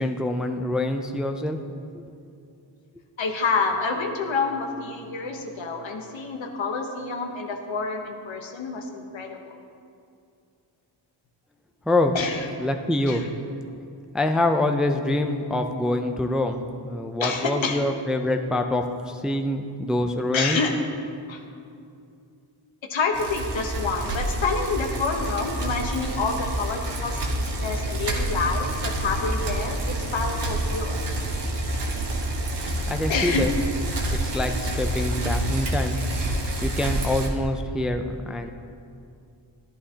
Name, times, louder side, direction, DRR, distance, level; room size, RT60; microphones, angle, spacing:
voice 1, 0.0-1.6 1.9-2.0 11.9-12.1 12.6-13.2 14.1-20.6 32.9-33.5 34.1-36.0 36.6-38.5, left 1 dB, ahead, 6 dB, 0.4 m, -25 dB
voice 2, 3.2-9.6 12.1-12.5 13.1-13.3 17.2-17.8 20.3-20.7 21.3-21.4 22.9-31.0 33.1-33.5, left 4 dB, 80° left, 3 dB, 1.1 m, -28 dB
Bicycle, 23.1-37.3, right 1 dB, 65° right, 1.2 m, -28 dB
14.0 x 11.0 x 2.8 m, 2.4 s
wide cardioid pair, 125°, 45 cm